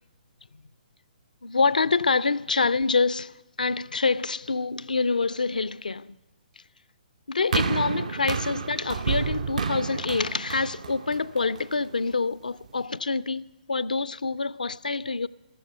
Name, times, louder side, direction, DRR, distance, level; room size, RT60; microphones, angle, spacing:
voice 1, 1.4-6.1 7.3-15.3, left 4 dB, 70° left, 0.4 m, -26 dB
sound 1, 7.5-11.9 12.7-12.8, right 5 dB, 55° right, 0.6 m, -30 dB
14.5 x 13.5 x 6.6 m
figure-of-eight pair, 125°, 4 cm